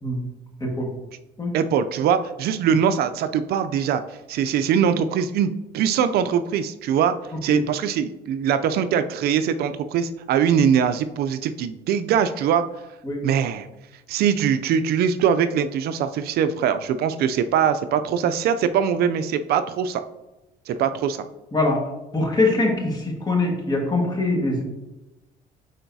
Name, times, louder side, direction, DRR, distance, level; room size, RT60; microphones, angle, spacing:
voice 1, 1.5-4.0 4.3-7.2 7.4-12.6 13.2-13.7 14.1-20.0 20.7-21.2, right 8 dB, 65° right, 11 dB, 0.4 m, -22 dB
voice 2, 22.1-24.6, left 2 dB, 25° left, 1 dB, 1.6 m, -23 dB
9.1 x 3.9 x 2.7 m, 1.0 s
cardioid pair, 110°, 17 cm